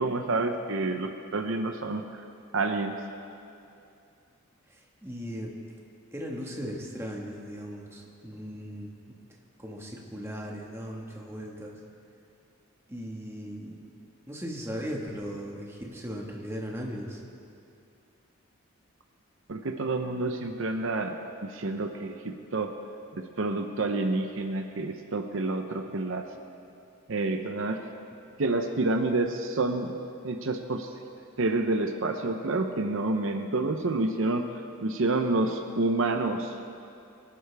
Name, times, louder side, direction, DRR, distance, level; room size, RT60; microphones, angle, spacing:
voice 1, 0.0-2.2 2.5-3.0 19.5-21.2 21.4-22.7 23.1-26.3 27.1-27.8 28.4-30.0 30.2-30.9 31.4-34.5 34.8-36.5, right 2 dB, 60° right, 5 dB, 0.7 m, -28 dB
voice 2, 4.7-5.5 6.1-8.9 9.6-11.8 12.9-13.8 14.3-17.2, equal, 10° right, -2 dB, 1.6 m, -38 dB
24.0 x 11.5 x 3.4 m, 2.6 s
head